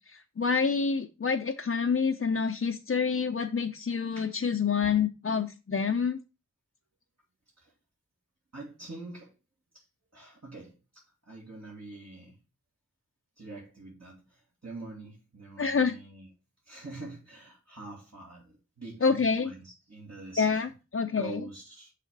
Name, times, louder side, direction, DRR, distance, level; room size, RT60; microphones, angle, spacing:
voice 1, 0.1-6.2 15.6-16.0 19.0-19.5 20.4-20.7 20.9-21.4, left 5 dB, 50° left, 0.5 m, -27 dB
voice 2, 8.5-9.3 9.7-9.8 10.1-12.4 13.4-16.3 16.6-20.7 21.2-21.9, right 2 dB, 60° right, 2.1 m, -45 dB
6.5 x 3.5 x 5.3 m
wide cardioid pair, 50°, 29 cm